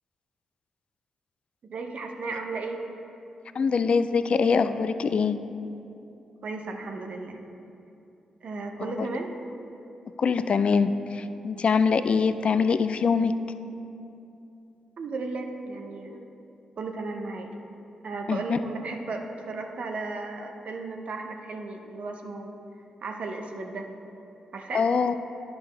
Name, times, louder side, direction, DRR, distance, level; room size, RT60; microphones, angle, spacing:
voice 1, 1.6-2.9 6.4-7.4 8.4-9.3 15.0-16.2 16.8-17.5 18.0-22.5 23.0-23.9 24.5-24.9, right 3 dB, 60° right, 4 dB, 0.7 m, -35 dB
voice 2, 3.6-5.4 8.8-9.1 10.2-13.3 18.3-18.6 24.7-25.2, left 5 dB, 50° left, 11 dB, 0.3 m, -23 dB
10.5 x 5.2 x 3.4 m, 2.8 s
hypercardioid pair, 45°, 2 cm